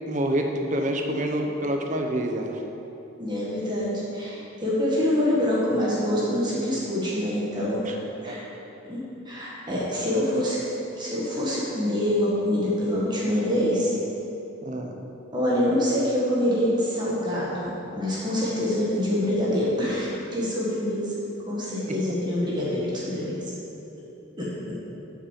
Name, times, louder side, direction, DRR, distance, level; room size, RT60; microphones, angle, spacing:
voice 1, 0.1-2.6 7.8-8.0 8.2-8.4 14.6-14.9, right 1 dB, 35° right, 3 dB, 0.8 m, -27 dB
voice 2, 3.2-8.4 8.8-10.6 10.9-13.9 15.3-21.1 21.4-23.4 24.4-24.7, left 1 dB, 20° right, -6 dB, 1.6 m, -25 dB
8.0 x 6.1 x 7.5 m, 2.9 s
head